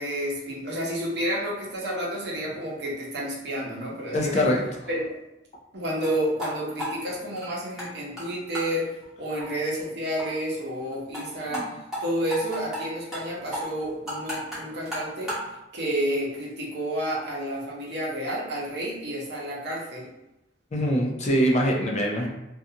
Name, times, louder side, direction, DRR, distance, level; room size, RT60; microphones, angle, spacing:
voice 1, 0.0-4.5 4.9-5.0 5.7-8.9 9.2-11.7 12.0-15.3 15.7-20.1, equal, 65° right, -4 dB, 0.8 m, -30 dB
voice 2, 4.1-4.6 11.5-11.7 20.7-22.3, equal, 40° left, -1 dB, 0.5 m, -23 dB
sound 1, 6.0-6.1 6.4-6.5 6.8-7.9 8.2-8.3 8.5-8.7 9.0-9.1 9.4-9.5 9.8-9.9 10.2-10.3 10.5-10.6 10.9-11.3 11.5-11.6 11.9-12.0 12.3-12.8 13.1-13.2 13.5-15.5, equal, 5° right, 1.0 m, -33 dB
2.5 x 2.3 x 2.7 m, 0.93 s
head